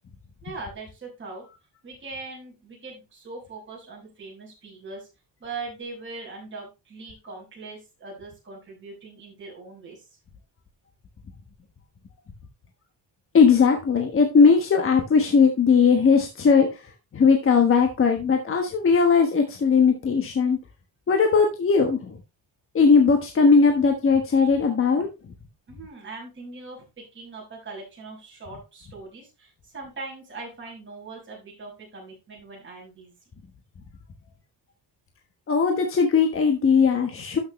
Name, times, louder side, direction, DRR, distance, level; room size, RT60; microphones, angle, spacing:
voice 1, 0.4-1.4 1.8-5.1 5.4-10.2 25.7-33.1, right 3 dB, 30° right, -3 dB, 6.0 m, -40 dB
voice 2, 13.3-16.7 17.1-20.6 21.1-22.2 22.7-25.1 35.5-37.4, left 5 dB, 35° left, 4 dB, 1.3 m, -19 dB
12.0 x 6.6 x 3.1 m, 0.26 s
wide cardioid pair, 175°, 39 cm